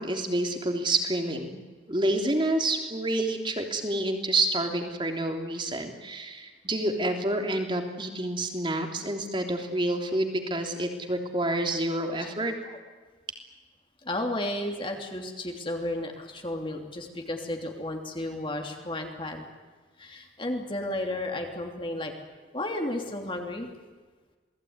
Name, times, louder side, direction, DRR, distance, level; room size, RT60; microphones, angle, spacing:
voice 1, 0.0-1.6 1.9-12.5, right 1 dB, 25° right, 4 dB, 3.3 m, -28 dB
voice 2, 14.0-19.5 20.0-22.1 22.5-23.7, left 1 dB, 25° left, 2 dB, 3.1 m, -33 dB
28.0 x 19.5 x 9.7 m, 1.3 s
head